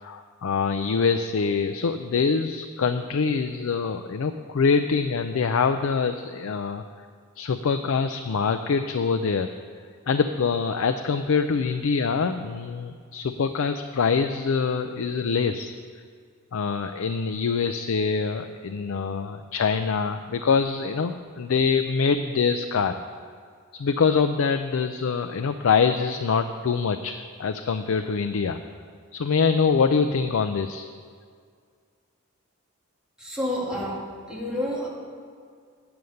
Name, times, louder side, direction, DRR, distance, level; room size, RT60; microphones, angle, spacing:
voice 1, 0.0-6.8 7.4-9.5 10.1-15.8 16.5-23.0 23.7-28.6 29.1-30.9, left 5 dB, 75° left, 8 dB, 0.4 m, -24 dB
voice 2, 33.2-34.9, left 1 dB, 5° right, -6 dB, 2.3 m, -29 dB
9.2 x 6.9 x 6.5 m, 2.1 s
head